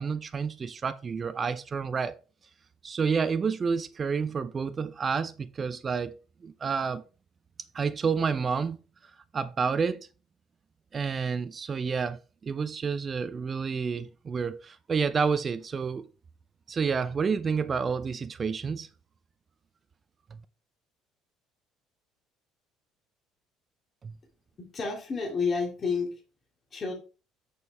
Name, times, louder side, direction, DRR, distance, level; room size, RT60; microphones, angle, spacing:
voice 1, 0.0-2.2 2.8-6.2 6.4-7.0 7.7-8.8 9.3-10.1 10.9-16.1 16.7-18.9 24.0-24.1, right 5 dB, 35° right, 0.5 m, -29 dB
voice 2, 24.6-26.1 26.7-26.9, left 4 dB, 40° left, 2.5 m, -30 dB
6.7 x 6.6 x 3.5 m
hypercardioid pair, 60°, 0 cm